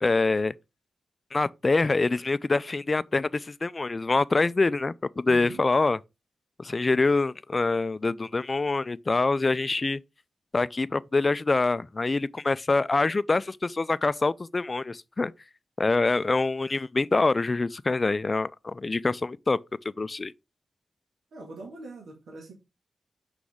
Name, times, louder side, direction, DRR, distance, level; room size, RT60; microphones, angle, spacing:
voice 1, 0.0-0.5 1.3-6.0 6.6-10.0 10.5-15.3 15.8-19.6 20.0-20.3, left 3 dB, 35° left, 0.4 m, -25 dB
voice 2, 5.3-5.6 21.3-22.5, right 3 dB, 80° right, 1.8 m, -42 dB
6.1 x 4.8 x 3.5 m
cardioid pair, 60°, 0 cm